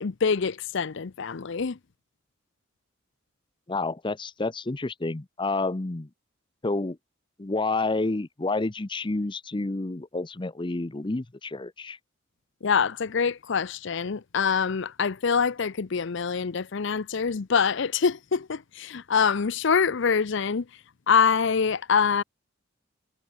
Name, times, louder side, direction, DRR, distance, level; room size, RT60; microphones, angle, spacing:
voice 1, 0.0-1.8 12.6-20.7 21.1-22.2, left 6 dB, 65° left, 0.6 m, -25 dB
voice 2, 3.7-6.1 6.6-7.0 7.4-12.0, left 2 dB, 25° left, 0.7 m, -29 dB
head